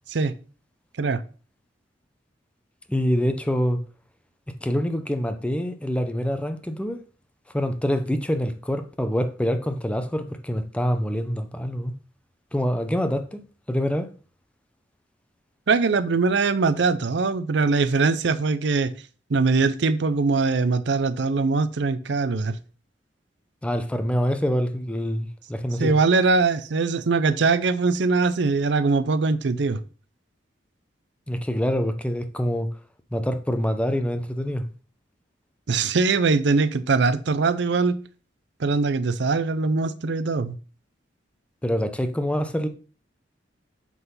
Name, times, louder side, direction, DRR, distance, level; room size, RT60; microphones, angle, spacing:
voice 1, 2.9-3.8 4.6-7.0 7.5-11.9 12.5-14.1 23.6-25.9 31.3-32.7 33.1-34.7 41.6-42.7, equal, 5° left, 0.7 m, -25 dB
voice 2, 15.7-18.9 19.3-22.6 25.8-29.8 35.7-38.0 38.6-40.6, right 4 dB, 65° right, 0.6 m, -22 dB
8.3 x 4.0 x 5.5 m
head